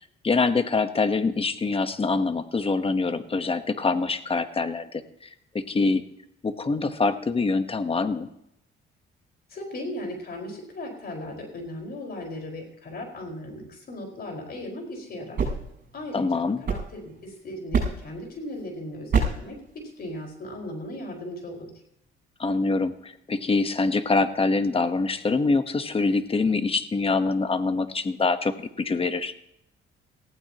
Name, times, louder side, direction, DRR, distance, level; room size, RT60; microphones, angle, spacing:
voice 1, 0.2-5.0 5.5-6.0 6.4-8.3 16.1-16.6 22.4-29.3, left 3 dB, 30° left, 10 dB, 1.2 m, -25 dB
voice 2, 9.5-15.5 15.9-21.7, left 1 dB, 50° left, 2 dB, 5.0 m, -37 dB
sound 1, 15.1-17.3 17.7-18.2 19.1-19.6, right 4 dB, 50° right, 6.2 m, -27 dB
19.0 x 15.5 x 3.0 m, 0.77 s
cardioid pair, 90°, 20 cm